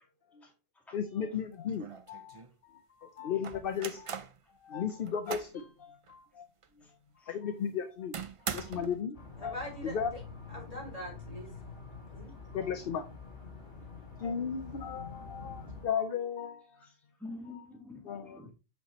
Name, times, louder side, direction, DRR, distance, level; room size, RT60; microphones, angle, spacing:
voice 1, 0.9-4.1 4.6-6.5 7.3-8.2 8.5-9.2 9.4-9.5 9.8-10.1 12.5-13.0 14.2-16.7 18.0-18.5, left 7 dB, 55° left, 0.9 m, -35 dB
sound 1, 1.3-1.4 1.8-2.5 3.4-4.4 4.9-5.6 6.1-6.2 6.6-6.7 8.1-9.0, right 6 dB, 45° right, 0.4 m, -40 dB
sound 2, 9.1-15.9, left 4 dB, 80° left, 2.9 m, -47 dB
voice 2, 9.4-10.2 10.5-11.5 12.1-12.3, equal, 30° left, 5.1 m, -43 dB
voice 3, 16.8-18.5, left 2 dB, ahead, 1.6 m, -47 dB
8.4 x 5.8 x 3.0 m
omnidirectional pair, 1.1 m